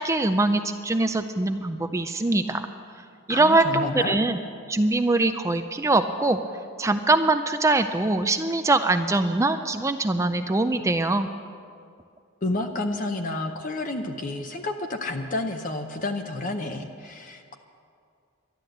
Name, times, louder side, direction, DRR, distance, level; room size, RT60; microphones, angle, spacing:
voice 1, 0.0-2.7 3.3-4.4 4.7-6.4 6.8-11.3, right 2 dB, 15° right, 8 dB, 0.4 m, -23 dB
voice 2, 3.3-4.2 12.4-17.6, left 2 dB, 40° left, 5 dB, 0.7 m, -30 dB
12.0 x 11.5 x 7.8 m, 2.3 s
head